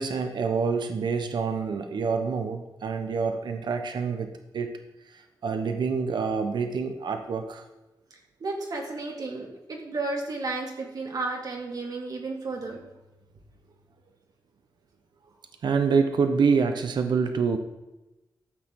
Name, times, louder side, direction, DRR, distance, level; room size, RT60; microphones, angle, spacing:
voice 1, 0.0-4.3 4.5-4.8 5.1-7.6 15.6-17.6, right 5 dB, 75° right, 7 dB, 0.9 m, -26 dB
voice 2, 8.4-12.9, right 3 dB, 55° right, 1 dB, 2.1 m, -33 dB
12.5 x 8.8 x 3.7 m, 1.0 s
wide cardioid pair, 175°, 8 cm